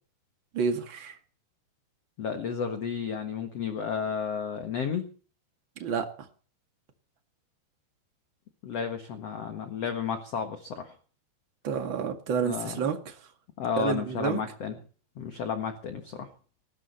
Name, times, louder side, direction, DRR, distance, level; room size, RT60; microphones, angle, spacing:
voice 1, 0.5-1.2 5.8-6.1 11.6-13.2 13.8-14.4, right 6 dB, 40° right, 6 dB, 1.8 m, -29 dB
voice 2, 2.2-5.0 8.6-11.0 12.4-12.8 13.6-14.8 15.2-16.3, left 7 dB, 55° left, 7 dB, 1.9 m, -32 dB
19.5 x 16.5 x 4.4 m, 0.40 s
omnidirectional pair, 4.9 m